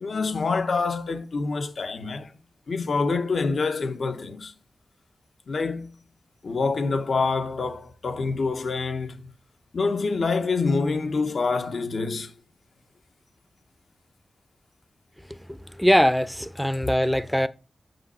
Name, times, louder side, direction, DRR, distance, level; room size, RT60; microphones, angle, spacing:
voice 1, 0.0-2.3 2.7-4.5 5.5-5.9 6.4-9.3 9.7-12.3, left 4 dB, 70° left, 0.9 m, -26 dB
voice 2, 15.8-17.5, equal, 5° left, 0.6 m, -21 dB
8.0 x 6.2 x 4.2 m
wide cardioid pair, 90°, 0 cm